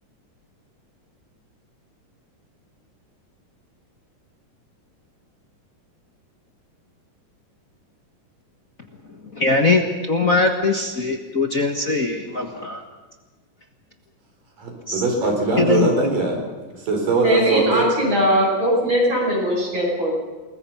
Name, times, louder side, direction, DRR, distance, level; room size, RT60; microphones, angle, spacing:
voice 1, 9.3-12.8 14.9-15.0 15.6-16.1, left 3 dB, 45° left, 4 dB, 1.1 m, -21 dB
voice 2, 14.6-16.4 16.8-17.8, right 2 dB, 80° right, 2 dB, 6.1 m, -21 dB
voice 3, 17.2-20.2, equal, 35° right, -3 dB, 8.5 m, -20 dB
28.5 x 21.0 x 5.8 m, 1.3 s
omnidirectional pair, 3.8 m